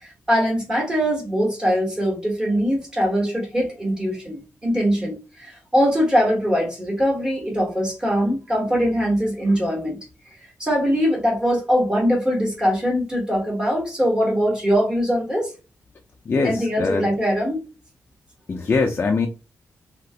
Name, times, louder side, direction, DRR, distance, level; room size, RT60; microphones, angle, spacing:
voice 1, 0.0-10.0 10.6-15.5 16.4-17.6, equal, 15° right, 1.3 m, -22 dB
voice 2, 16.3-17.1 18.5-19.3, left 4 dB, 35° left, 0.4 m, -22 dB
2.8 x 2.5 x 3.3 m
wide cardioid pair, 160°, 6 cm